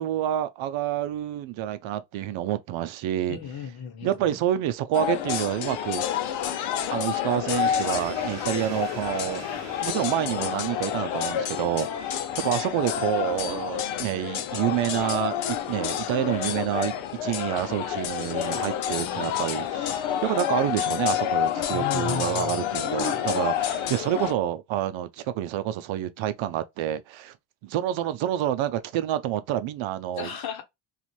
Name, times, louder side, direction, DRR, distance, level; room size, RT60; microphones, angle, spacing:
voice 1, 0.0-3.4 4.0-6.1 6.9-9.5 9.8-16.9 17.2-27.3 27.6-30.3, right 12 dB, 75° right, 0.6 m, -28 dB
voice 2, 3.3-4.4 21.7-22.7 30.2-30.6, left 6 dB, 50° left, 1.0 m, -35 dB
sound 1, 4.9-24.3, left 10 dB, 85° left, 0.7 m, -29 dB
sound 2, 7.5-13.9, right 5 dB, 35° right, 0.9 m, -45 dB
2.5 x 2.5 x 2.9 m
cardioid pair, 90°, 47 cm